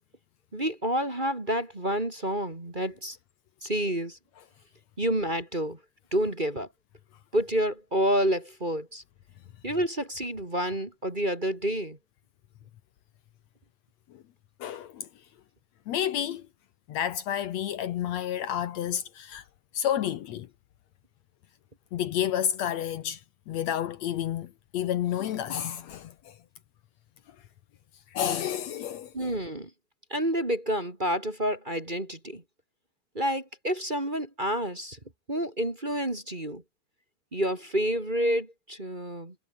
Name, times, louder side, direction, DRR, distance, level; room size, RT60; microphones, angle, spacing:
voice 1, 0.5-3.2 3.6-4.2 5.0-5.8 6.1-6.7 7.3-9.0 9.6-12.0 29.1-29.7 30.1-32.4 33.1-35.0 35.3-36.6 37.3-39.3, equal, 15° right, 2.4 m, -29 dB
voice 2, 14.6-15.1 15.9-16.5 16.9-19.4 19.7-20.5 21.9-23.2 23.5-26.4 28.1-29.3, left 10 dB, 70° left, 2.1 m, -30 dB
omnidirectional pair, 3.5 m